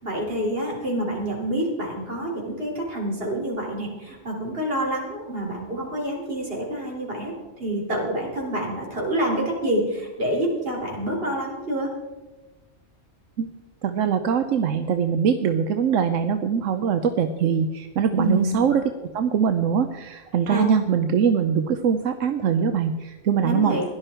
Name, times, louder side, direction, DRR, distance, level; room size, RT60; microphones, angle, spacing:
voice 1, 0.0-11.9 18.1-18.6 20.5-20.7 23.4-23.8, right 1 dB, 50° right, -2 dB, 4.1 m, -27 dB
voice 2, 13.8-18.8 19.1-23.8, right 7 dB, 85° right, 8 dB, 1.1 m, -22 dB
16.5 x 11.5 x 4.4 m, 1.1 s
omnidirectional pair, 1.3 m